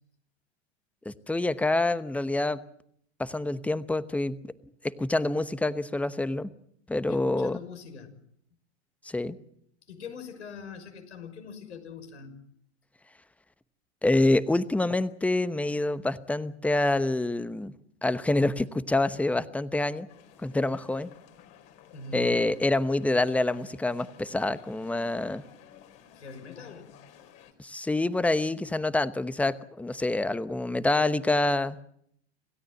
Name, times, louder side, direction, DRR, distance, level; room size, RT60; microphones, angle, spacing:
voice 1, 1.0-2.6 3.2-4.4 4.8-6.5 6.9-7.6 9.0-9.4 14.0-17.7 18.0-20.1 20.4-21.1 22.1-25.4 27.6-31.8, left 2 dB, 5° left, 14 dB, 0.9 m, -26 dB
voice 2, 7.1-8.1 9.9-12.4 21.9-22.4 26.1-27.0, left 5 dB, 85° left, 6 dB, 6.1 m, -43 dB
sound 1, 20.1-27.5, left 9 dB, 45° left, 4.2 m, -54 dB
27.0 x 16.5 x 7.7 m, 0.70 s
hypercardioid pair, 105°, 34 cm